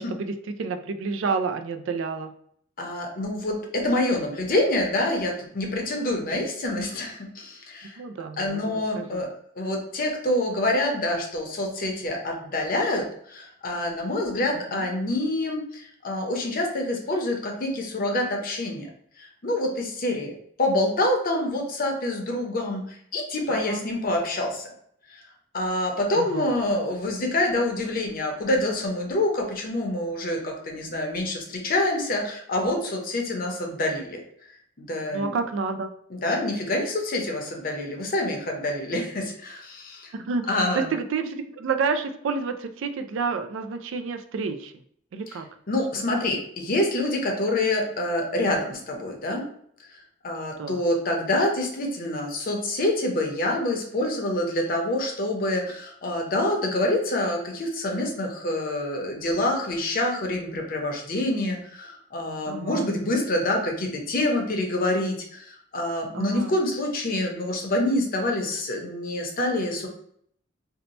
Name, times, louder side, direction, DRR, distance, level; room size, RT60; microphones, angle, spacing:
voice 1, 0.0-2.3 8.0-9.3 14.7-14.9 23.5-23.9 26.2-26.5 35.1-35.9 40.1-44.7 45.1-45.5 50.6-50.8 62.5-62.9 66.1-66.6, right 4 dB, 85° right, 8 dB, 0.4 m, -30 dB
voice 2, 2.8-8.0 8.4-9.3 9.6-18.9 19.2-20.3 20.6-24.7 25.5-34.2 34.8-35.3 36.1-40.1 40.5-40.9 45.7-49.4 50.2-69.9, left 1 dB, 50° left, 1 dB, 0.7 m, -26 dB
2.7 x 2.1 x 4.0 m, 0.66 s
head